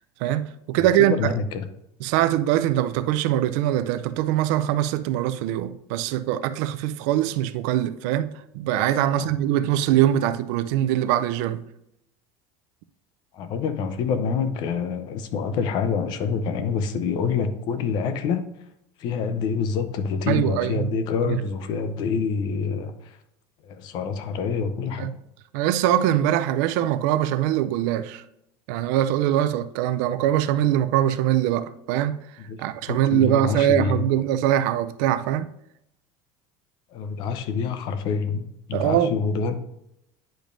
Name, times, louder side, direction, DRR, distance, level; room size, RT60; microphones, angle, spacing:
voice 1, 0.2-1.2 2.0-11.6 20.3-20.9 21.2-21.4 25.0-25.1 25.5-28.2 28.7-32.2 32.6-35.5 38.7-39.1, right 12 dB, 65° right, 0.5 m, -22 dB
voice 2, 0.8-1.7 9.1-9.3 13.3-18.4 19.0-23.2 23.6-25.1 32.5-34.1 36.9-39.6, left 5 dB, 45° left, 0.7 m, -27 dB
8.9 x 5.2 x 2.6 m
cardioid pair, 160°, 10 cm